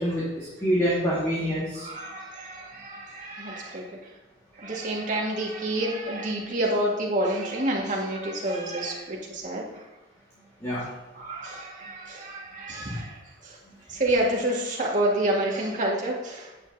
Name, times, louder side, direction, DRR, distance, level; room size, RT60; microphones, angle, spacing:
voice 1, 0.0-1.9 10.6-10.9, equal, 15° left, -8 dB, 1.9 m, -26 dB
voice 2, 1.7-3.9 4.6-9.7 11.1-13.1 13.4-13.6 13.9-16.5, right 1 dB, 40° right, -3 dB, 1.8 m, -28 dB
9.3 x 7.4 x 2.8 m, 1.1 s
head